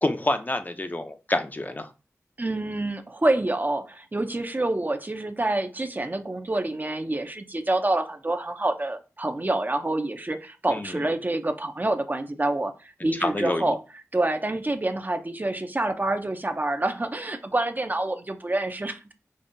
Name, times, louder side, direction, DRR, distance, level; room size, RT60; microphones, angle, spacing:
voice 1, 0.0-1.9 10.7-11.0 13.0-13.6, left 2 dB, 30° left, 8 dB, 0.5 m, -27 dB
voice 2, 2.4-13.8 14.1-19.1, right 2 dB, 35° right, 8 dB, 0.6 m, -27 dB
5.2 x 2.4 x 2.6 m, 0.31 s
cardioid pair, 45°, 6 cm